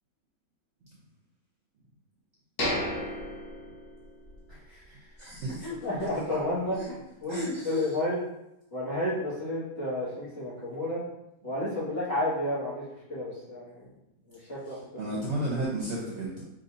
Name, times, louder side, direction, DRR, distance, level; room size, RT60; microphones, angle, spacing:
sound 1, 2.6-4.5 4.8-4.9 5.5-5.6, left 1 dB, 85° left, 1.5 m, -33 dB
voice 1, 4.5-5.0 5.6-8.2 8.7-11.0 11.4-12.8 13.1-13.9 14.3-14.9, left 1 dB, 40° left, -10 dB, 2.1 m, -31 dB
voice 2, 5.2-5.7 6.8-6.9 7.3-7.9 15.0-16.4, right 1 dB, 55° right, -5 dB, 1.0 m, -32 dB
5.3 x 3.4 x 2.7 m, 0.85 s
omnidirectional pair, 1.6 m